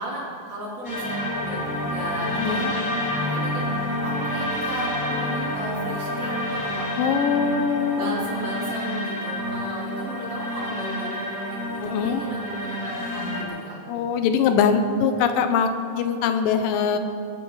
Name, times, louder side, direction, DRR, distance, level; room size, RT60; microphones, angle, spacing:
voice 1, 0.0-6.9 7.9-14.1, right 1 dB, 35° right, -5 dB, 3.4 m, -35 dB
sound 1, 0.8-13.4, left 1 dB, 30° left, 1.9 m, -28 dB
voice 2, 2.4-2.7 7.0-8.3 11.8-12.2 13.9-15.7 16.0-17.0, left 6 dB, 80° left, 8 dB, 2.5 m, -22 dB
22.0 x 8.4 x 4.8 m, 2.5 s
omnidirectional pair, 3.9 m